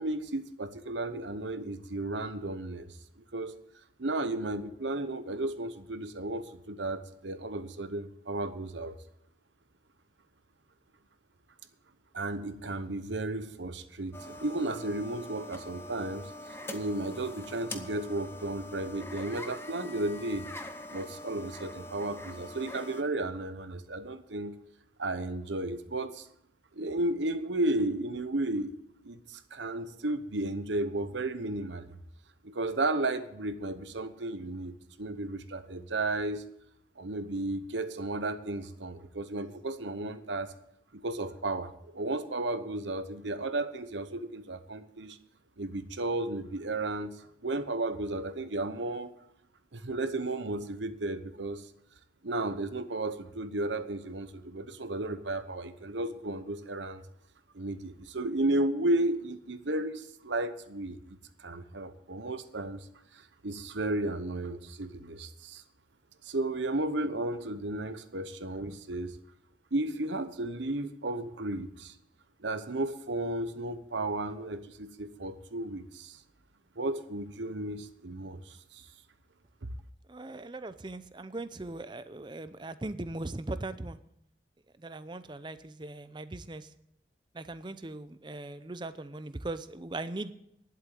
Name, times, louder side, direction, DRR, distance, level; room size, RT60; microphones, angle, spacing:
voice 1, 0.0-3.5 4.0-9.0 12.1-16.3 16.7-20.5 20.9-24.6 25.0-26.3 26.7-31.9 32.4-36.4 37.0-40.5 40.9-45.2 45.6-49.1 49.7-51.7 52.2-57.0 57.5-62.9 63.1-65.6 66.2-69.2 69.7-71.9 72.4-76.2 76.8-78.9, right 2 dB, 75° right, 11 dB, 1.0 m, -34 dB
sound 1, 14.1-23.0, left 1 dB, 15° left, 0.8 m, -44 dB
voice 2, 80.1-84.0 84.8-86.7 87.3-90.3, right 2 dB, 25° right, 13 dB, 0.6 m, -39 dB
11.0 x 7.6 x 8.6 m, 0.75 s
head